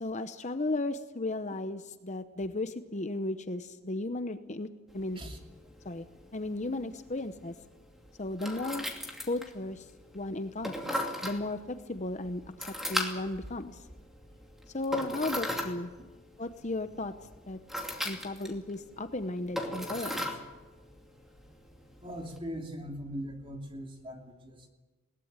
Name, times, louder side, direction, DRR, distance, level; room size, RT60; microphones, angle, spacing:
voice 1, 0.0-4.7 4.9-5.2 5.8-6.0 6.3-7.5 8.2-8.9 9.3-9.9 10.1-12.4 12.9-13.8 14.7-15.9 16.4-17.1 17.5-17.6 18.0-20.2, left 2 dB, 35° left, 10 dB, 0.8 m, -35 dB
sound 1, 4.9-22.4, left 1 dB, ahead, 2.6 m, -39 dB
voice 2, 22.0-24.7, equal, 25° right, 3 dB, 3.0 m, -40 dB
21.0 x 18.0 x 9.0 m, 1.2 s
head